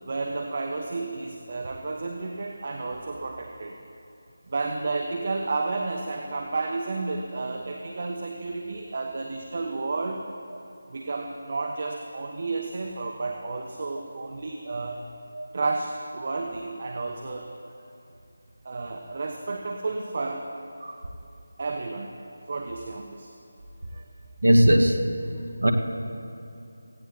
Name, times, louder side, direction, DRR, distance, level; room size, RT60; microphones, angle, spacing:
voice 1, 0.0-3.8 4.5-10.2 10.9-15.0 15.5-17.5 18.6-20.5 21.6-22.1 22.5-23.3 23.9-24.0 25.3-25.4, right 3 dB, 45° right, 3 dB, 0.9 m, -31 dB
voice 2, 24.4-25.0 25.6-25.7, equal, 75° right, 4 dB, 1.4 m, -18 dB
17.5 x 16.0 x 2.8 m, 2.7 s
figure-of-eight pair, 160°, 0 cm